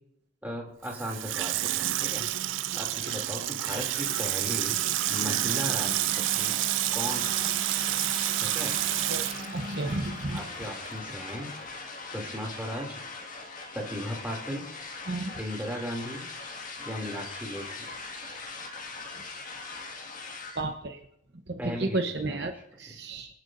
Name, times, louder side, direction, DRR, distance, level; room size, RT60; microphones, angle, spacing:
voice 1, 0.4-2.3 2.7-4.8 5.1-6.6 6.9-7.5 8.4-8.8 10.3-11.5 12.1-13.0 13.7-14.7 15.4-16.3 16.8-17.9 21.6-23.0, equal, 10° right, -1 dB, 2.7 m, -37 dB
Water tap faucet / Sink (filling or washing), 0.8-10.5 10.9-11.0, right 14 dB, 80° right, 0.4 m, -29 dB
sound 1, 2.9-20.6, left 3 dB, 40° left, 1.9 m, -41 dB
Wind instrument woodwind instrument, 5.1-10.3, left 1 dB, 35° right, 4.9 m, -44 dB
voice 2, 9.5-10.4 15.1-15.3 20.6-21.0 21.5-21.6 21.9-22.5 22.8-23.3, right 2 dB, 55° right, 5 dB, 0.9 m, -32 dB
26.5 x 8.9 x 2.6 m, 0.76 s
head